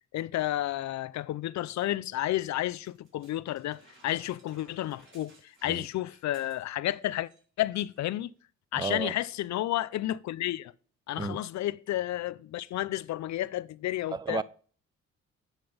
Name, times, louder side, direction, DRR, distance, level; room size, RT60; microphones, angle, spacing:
voice 1, 0.1-7.3 7.6-8.3 8.7-10.7 11.1-14.4, left 14 dB, 65° left, 0.5 m, -31 dB
sound 1, 2.8-7.0 7.2-7.4 7.7-8.1 8.9-9.0, right 2 dB, 40° right, 4.7 m, -60 dB
voice 2, 8.8-9.1 11.2-11.4 14.1-14.4, right 5 dB, 15° right, 0.4 m, -32 dB
8.9 x 5.8 x 5.0 m
cardioid pair, 90°, 30 cm